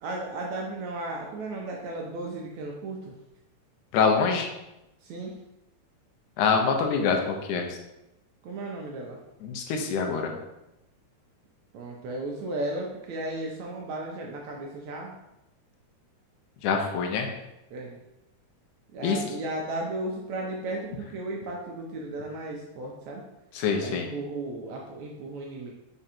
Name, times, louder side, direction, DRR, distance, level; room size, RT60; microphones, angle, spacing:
voice 1, 0.0-3.2 5.0-5.4 8.4-9.2 11.7-15.1 17.7-18.0 18.9-23.2 23.8-25.7, right 2 dB, 80° right, -1 dB, 1.7 m, -35 dB
voice 2, 3.9-4.5 6.4-7.8 9.4-10.3 16.6-17.3 19.0-19.2 23.5-24.1, left 5 dB, 80° left, 3 dB, 2.0 m, -25 dB
4.9 x 4.5 x 4.3 m, 0.93 s
omnidirectional pair, 3.8 m